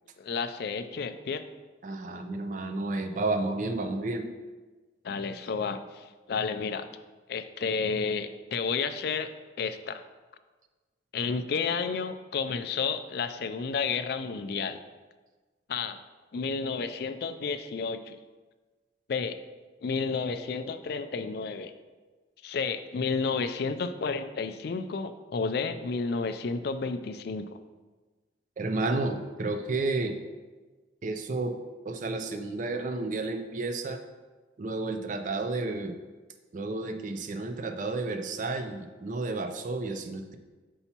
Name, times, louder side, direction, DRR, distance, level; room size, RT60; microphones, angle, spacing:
voice 1, 0.2-1.4 5.0-6.9 7.3-9.3 9.6-10.0 11.1-14.8 15.7-16.0 16.3-18.2 19.1-19.4 19.8-21.7 22.4-27.6, left 5 dB, 55° left, 9 dB, 0.3 m, -31 dB
voice 2, 1.8-4.3 28.6-30.2 31.0-31.6 31.9-34.0 34.6-35.9 36.5-40.4, right 3 dB, 40° right, 7 dB, 0.3 m, -31 dB
6.9 x 5.5 x 2.9 m, 1.3 s
head